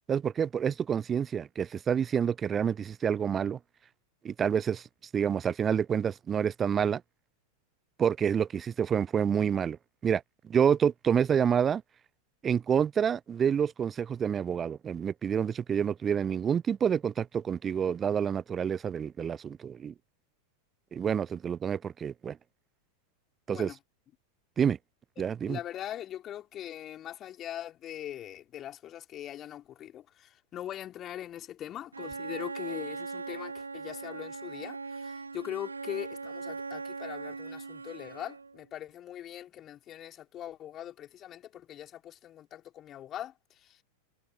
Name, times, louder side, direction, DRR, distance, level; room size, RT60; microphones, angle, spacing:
voice 1, 0.1-3.6 4.2-4.8 5.1-7.0 8.0-9.8 10.0-10.2 10.5-11.8 12.4-19.9 20.9-22.4 23.5-23.7 24.6-24.8 25.2-25.6, right 8 dB, 20° right, 0.3 m, -28 dB
voice 2, 25.2-43.8, left 11 dB, 30° left, 3.7 m, -41 dB
Bowed string instrument, 31.9-38.6, right 4 dB, 80° right, 2.4 m, -40 dB
figure-of-eight pair, 90°, 0 cm